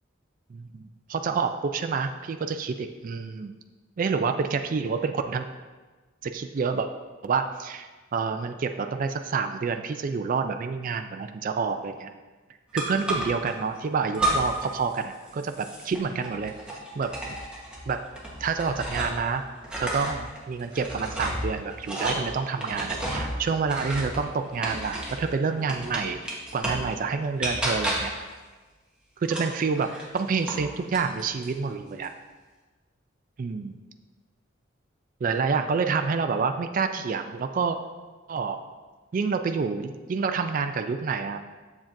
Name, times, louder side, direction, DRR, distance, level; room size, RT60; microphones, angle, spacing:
voice 1, 0.5-3.5 4.0-5.5 6.2-6.9 7.2-12.1 12.7-16.5 17.0-17.1 17.9-18.0 18.4-19.4 19.8-26.2 26.5-28.1 29.2-32.1 33.4-33.7 35.2-37.8 38.3-38.6 39.1-41.4, right 5 dB, 45° right, 7 dB, 0.3 m, -28 dB
sound 1, 12.8-13.5 14.1-14.7 15.0-19.3 19.6-25.3 25.7-26.9 27.4-28.2 29.2-30.6 30.9-31.5, right 1 dB, 5° right, 1.1 m, -32 dB
7.3 x 7.2 x 2.6 m, 1.3 s
head